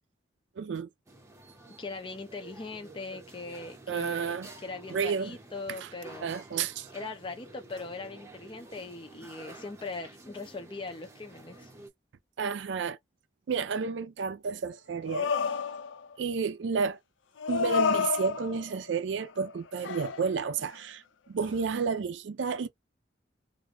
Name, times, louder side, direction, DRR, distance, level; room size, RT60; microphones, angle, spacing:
voice 1, 0.6-0.9 3.9-4.5 4.9-5.4 5.8-5.9 6.2-6.9 12.4-13.0 13.5-15.3 16.2-17.0 17.5-22.7, right 5 dB, 70° right, 0.4 m, -31 dB
sound 1, 1.1-11.9, right 2 dB, 15° right, 0.8 m, -50 dB
voice 2, 1.8-6.3 6.9-11.7, left 3 dB, 30° left, 0.6 m, -40 dB
sound 2, 15.1-16.2 17.4-18.7 19.2-19.6 19.8-20.8 21.4-21.5, left 5 dB, 85° left, 0.5 m, -30 dB
2.5 x 2.2 x 3.2 m
head